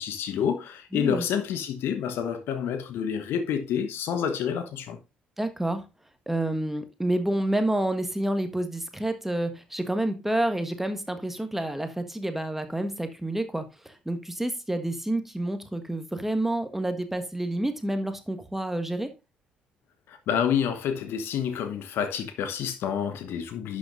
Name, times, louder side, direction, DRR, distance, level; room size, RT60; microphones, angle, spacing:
voice 1, 0.0-5.0 20.1-23.8, left 8 dB, 55° left, 1.2 m, -28 dB
voice 2, 0.9-1.2 5.4-5.9 6.3-19.1, right 1 dB, 5° right, 1.5 m, -29 dB
11.5 x 6.5 x 2.6 m
figure-of-eight pair, 45°, 5 cm